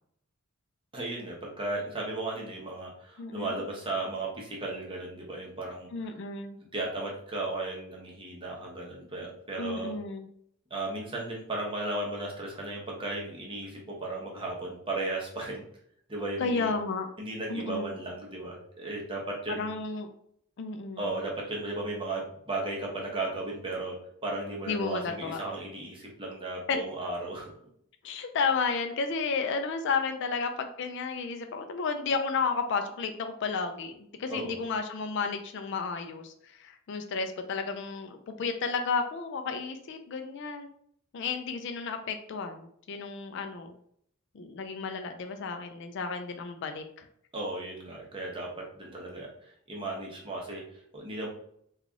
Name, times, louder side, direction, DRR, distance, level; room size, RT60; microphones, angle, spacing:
voice 1, 0.9-5.9 6.7-9.9 10.7-15.6 16.1-16.7 17.2-19.7 21.0-23.9 24.2-27.5 34.3-34.6 47.3-50.6 50.9-51.3, right 2 dB, 25° right, -3 dB, 0.9 m, -35 dB
voice 2, 3.2-3.6 5.9-6.6 9.6-10.3 16.4-17.1 17.5-17.9 19.5-20.1 20.6-21.1 24.7-25.4 26.7-26.8 28.0-40.7 41.1-43.8 44.3-47.1, left 4 dB, 55° left, 6 dB, 0.4 m, -32 dB
3.2 x 2.4 x 3.7 m, 0.68 s
head